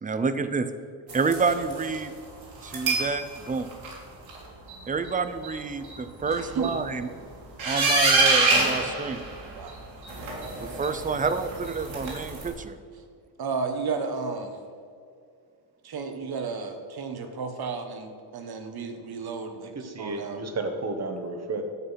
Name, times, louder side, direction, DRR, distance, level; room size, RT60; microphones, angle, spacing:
voice 1, 0.0-0.7 1.1-2.1 2.6-3.7 4.9-7.1 7.6-9.2 10.6-12.8, right 4 dB, 20° right, 11 dB, 0.5 m, -28 dB
sound 1, 1.1-2.0 2.6-3.1 3.5-3.9 4.3-4.4 4.7-4.8 5.1-5.2 5.4-5.5 5.8-5.9 6.2-6.8 7.6-9.7 10.0-12.5, right 3 dB, 75° right, 3.4 m, -26 dB
voice 2, 6.3-6.8 9.5-9.7 13.4-14.5 15.8-20.4, right 4 dB, 50° right, 6 dB, 1.4 m, -33 dB
voice 3, 19.6-21.6, right 3 dB, 35° right, 6 dB, 1.4 m, -32 dB
11.5 x 7.9 x 5.8 m, 2.3 s
cardioid pair, 135°, 47 cm